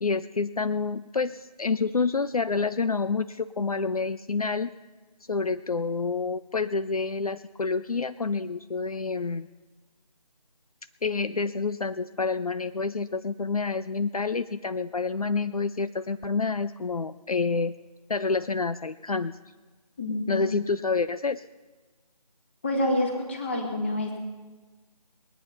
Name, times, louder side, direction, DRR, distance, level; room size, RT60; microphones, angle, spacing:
voice 1, 0.0-4.7 5.3-9.5 11.0-17.7 18.1-19.4 20.3-21.4, left 4 dB, 60° left, 12 dB, 0.5 m, -28 dB
voice 2, 20.0-20.4 22.6-24.2, left 1 dB, 15° left, 2 dB, 1.5 m, -27 dB
20.5 x 9.0 x 5.7 m, 1.3 s
figure-of-eight pair, 165°, 21 cm